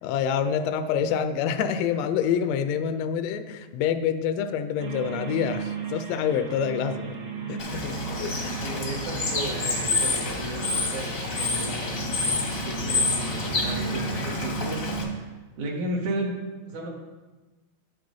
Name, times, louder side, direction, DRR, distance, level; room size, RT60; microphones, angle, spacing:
voice 1, 0.0-7.2 7.5-7.9 8.2-8.6, left 8 dB, 80° left, 8 dB, 1.5 m, -27 dB
sound 1, 4.8-15.1, right 5 dB, 60° right, 1.9 m, -35 dB
Bird / Water, 7.6-15.0, left 3 dB, 60° left, 0.8 m, -28 dB
voice 2, 8.5-12.2 12.5-16.9, right 1 dB, 75° right, 0 dB, 2.6 m, -35 dB
8.2 x 7.0 x 3.9 m, 1.2 s
omnidirectional pair, 3.4 m